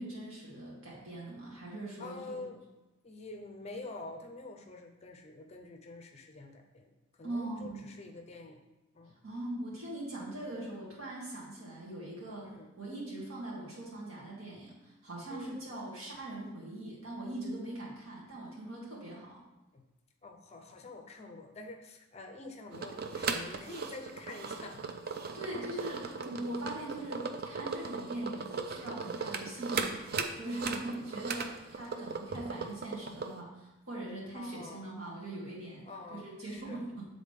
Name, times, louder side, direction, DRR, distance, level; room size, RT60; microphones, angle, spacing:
voice 1, 0.0-2.5 7.2-7.9 9.2-12.5 12.8-19.4 25.3-35.8 36.1-37.1, right 1 dB, 80° right, -5 dB, 2.1 m, -41 dB
voice 2, 2.0-2.6 3.0-6.9 7.2-8.6 8.9-9.2 12.4-12.7 15.3-15.6 19.7-19.8 20.2-24.8 30.9-31.0 34.3-34.9 35.8-36.8, left 3 dB, 30° left, 5 dB, 0.5 m, -47 dB
sound 1, 22.7-33.3, right 5 dB, 45° right, 0.4 m, -38 dB
8.1 x 3.8 x 3.6 m, 1.0 s
head